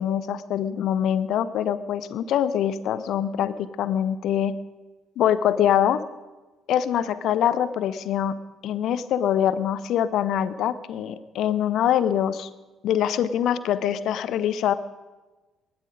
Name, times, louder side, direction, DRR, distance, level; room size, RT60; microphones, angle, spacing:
voice 1, 0.0-4.5 5.2-6.0 6.7-8.3 8.6-12.5 12.8-14.7, left 10 dB, 55° left, 15 dB, 0.8 m, -24 dB
19.5 x 13.0 x 5.1 m, 1.2 s
figure-of-eight pair, 50°, 0 cm